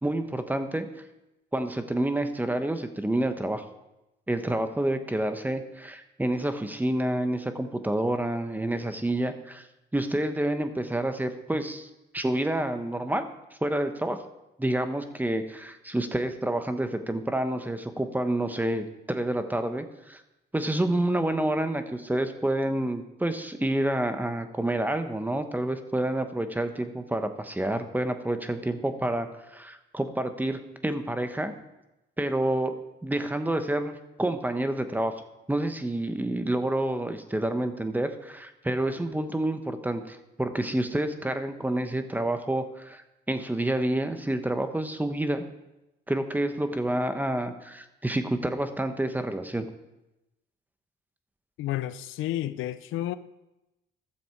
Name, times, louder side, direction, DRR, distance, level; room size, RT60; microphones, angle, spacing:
voice 1, 0.0-0.9 1.5-3.6 4.3-9.7 9.9-11.9 12.1-13.2 13.6-14.2 14.6-20.2 20.5-31.5 32.2-35.1 35.5-45.4 46.1-49.7, right 1 dB, 10° right, 8 dB, 1.0 m, -28 dB
voice 2, 51.6-53.2, left 14 dB, 85° left, 14 dB, 0.5 m, -31 dB
13.0 x 7.1 x 4.6 m, 0.94 s
cardioid pair, 90°, 20 cm